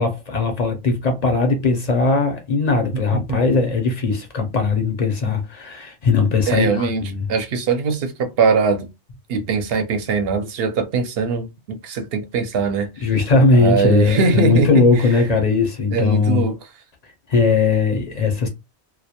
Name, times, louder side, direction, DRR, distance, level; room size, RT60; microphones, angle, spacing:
voice 1, 0.0-7.3 13.0-16.4 17.3-18.5, left 4 dB, 50° left, 0.5 m, -19 dB
voice 2, 3.1-3.6 6.5-7.0 7.3-8.9 9.3-13.1 13.5-15.1 15.9-16.5, right 5 dB, 65° right, 0.7 m, -21 dB
2.2 x 2.1 x 2.7 m
omnidirectional pair, 1.2 m